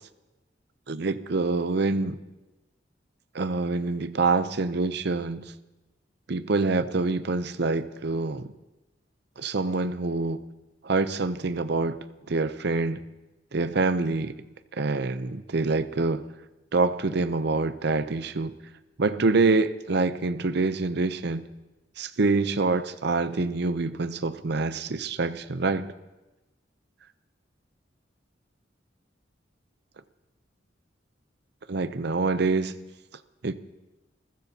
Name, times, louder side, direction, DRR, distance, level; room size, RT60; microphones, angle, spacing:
voice 1, 0.9-2.2 3.3-5.5 6.3-8.5 9.4-10.4 10.8-12.0 12.3-13.0 13.5-14.4 14.7-16.3 16.7-18.5 19.0-21.5 22.0-25.9 31.7-32.8 33.4-33.6, right 3 dB, 60° right, 13 dB, 0.7 m, -26 dB
27.0 x 15.0 x 2.9 m, 1.0 s
head